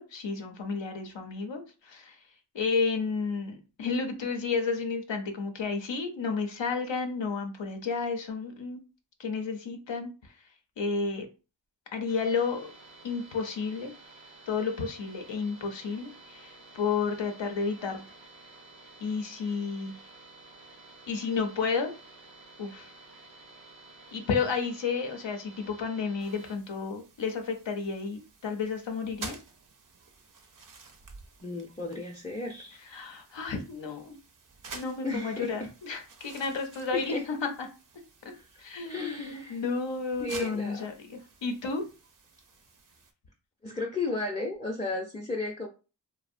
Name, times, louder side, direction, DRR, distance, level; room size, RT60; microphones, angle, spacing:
voice 1, 0.0-2.2 2.5-8.8 9.2-10.3 10.8-11.3 11.9-12.7 13.0-13.9 14.5-18.0 19.0-19.9 21.1-21.9 22.6-22.9 24.1-29.4 32.9-34.2 34.7-37.7 38.2-38.3 38.6-41.9, left 5 dB, 80° left, 4 dB, 0.6 m, -32 dB
sound 1, 12.1-26.5, right 2 dB, 85° right, 0.7 m, -52 dB
sound 2, 26.2-43.1, right 4 dB, 50° right, 0.5 m, -50 dB
voice 2, 31.4-32.8 35.0-35.7 36.9-37.3 38.3-39.6 40.2-40.9 43.6-45.7, left 3 dB, 15° left, 0 dB, 0.4 m, -34 dB
2.6 x 2.0 x 2.5 m, 0.32 s
wide cardioid pair, 45°, 44 cm